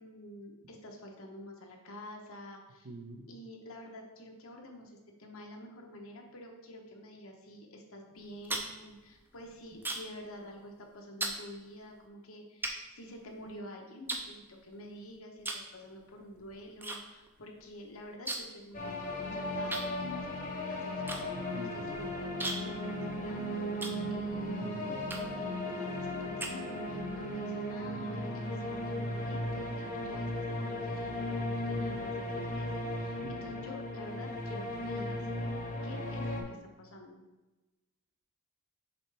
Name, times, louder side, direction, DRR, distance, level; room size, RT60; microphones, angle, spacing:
voice 1, 0.0-2.9 3.3-35.2 35.8-37.2, left 1 dB, 70° left, 2 dB, 1.0 m, -48 dB
voice 2, 2.8-3.3 21.5-22.0 24.6-24.8 33.2-33.4, right 2 dB, 70° right, 4 dB, 0.8 m, -45 dB
sound 1, 8.2-10.2 10.5-10.8 11.2-11.4 12.0-12.1 12.6-13.6 14.1-14.9 15.4-15.7 16.0-17.0 17.3-17.4 17.6-18.6 18.9-19.0 19.7-24.5 25.0-25.5 26.0-27.0, right 2 dB, 10° right, 0.5 m, -39 dB
sound 2, 18.7-36.4, left 1 dB, 35° left, 0.9 m, -36 dB
7.0 x 4.4 x 3.4 m, 1.1 s
head